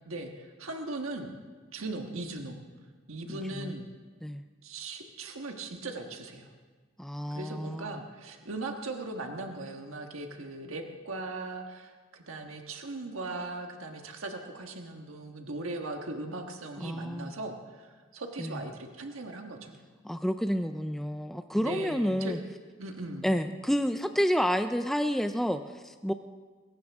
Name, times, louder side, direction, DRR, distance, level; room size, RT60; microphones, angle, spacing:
voice 1, 0.0-1.3 1.7-2.6 3.1-3.9 4.6-6.5 7.3-19.8 21.6-22.3 22.8-23.3, right 2 dB, 85° right, 3 dB, 1.5 m, -39 dB
voice 2, 3.3-3.7 4.2-4.4 7.0-8.0 16.8-17.3 18.4-18.6 20.0-22.4 23.2-26.1, equal, ahead, 7 dB, 0.4 m, -30 dB
21.5 x 18.0 x 3.6 m, 1.4 s
head